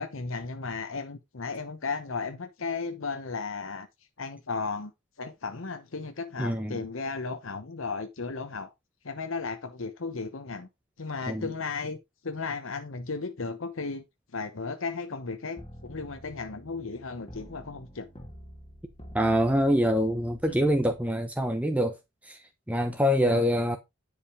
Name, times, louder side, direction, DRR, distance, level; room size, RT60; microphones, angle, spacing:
voice 1, 0.0-3.9 4.2-4.9 5.2-8.7 9.0-10.7 11.0-12.0 12.2-14.0 14.3-18.1 20.5-20.6 23.2-23.4, left 4 dB, 70° left, 1.0 m, -35 dB
voice 2, 6.4-6.8 11.3-11.5 19.1-22.0 22.2-22.4 22.7-23.8, equal, 5° right, 0.9 m, -25 dB
sound 1, 15.6-21.1, equal, 25° left, 2.6 m, -48 dB
10.0 x 5.2 x 4.9 m
head